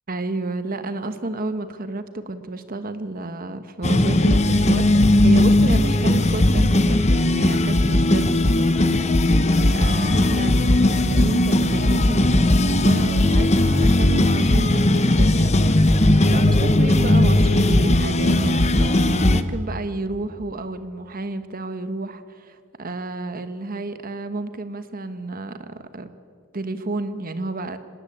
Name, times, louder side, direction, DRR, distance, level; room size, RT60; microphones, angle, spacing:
voice 1, 0.1-15.9 16.3-26.1 26.5-27.8, right 2 dB, 40° right, 10 dB, 1.2 m, -31 dB
sound 1, 3.8-19.4, left 1 dB, 30° left, 1.0 m, -18 dB
26.0 x 19.5 x 8.7 m, 2.2 s
head